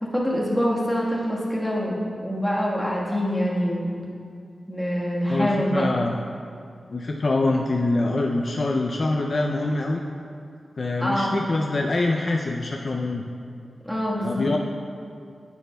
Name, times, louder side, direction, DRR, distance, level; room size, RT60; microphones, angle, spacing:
voice 1, 0.0-4.0 4.7-5.9 11.0-11.4 13.8-14.5, equal, 5° left, -6 dB, 1.4 m, -25 dB
voice 2, 5.3-6.1 6.9-10.0 10.8-13.2 14.2-14.6, left 2 dB, 40° left, 1 dB, 0.4 m, -24 dB
10.0 x 9.6 x 2.3 m, 2.3 s
wide cardioid pair, 160°, 0 cm